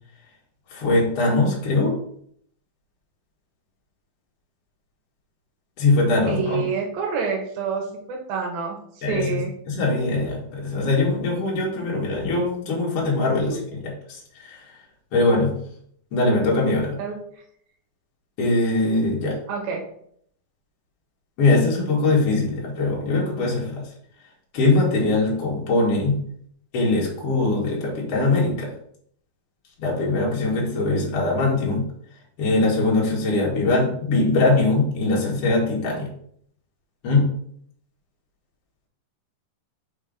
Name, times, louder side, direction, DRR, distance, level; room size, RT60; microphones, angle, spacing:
voice 1, 0.7-1.9 5.8-6.6 9.0-13.8 14.1-14.7 15.1-15.5 16.1-17.0 18.4-19.4 21.4-23.8 24.5-26.2 26.7-28.7 29.8-31.8 32.4-36.1 37.0-37.3, left 2 dB, 50° left, -3 dB, 2.4 m, -21 dB
voice 2, 6.3-9.5 17.0-17.2 19.5-19.8, right 5 dB, 85° right, 0 dB, 2.9 m, -27 dB
6.1 x 3.4 x 5.1 m, 0.66 s
omnidirectional pair, 4.2 m